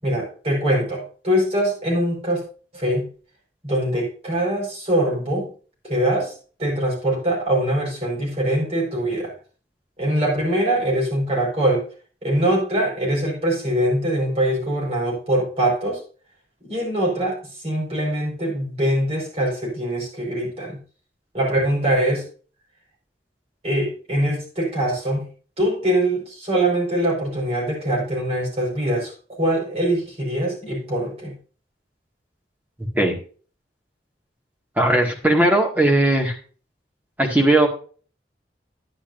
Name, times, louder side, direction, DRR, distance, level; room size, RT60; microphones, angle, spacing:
voice 1, 0.0-2.4 2.7-3.1 3.6-5.5 5.8-6.3 6.6-9.3 10.0-11.8 12.2-16.0 16.7-20.8 21.3-22.2 23.6-25.3 25.6-31.3, right 1 dB, 35° right, -3 dB, 5.0 m, -23 dB
voice 2, 34.8-36.3 37.2-37.7, right 1 dB, 10° right, 0 dB, 2.0 m, -18 dB
10.5 x 10.0 x 2.6 m, 0.39 s
head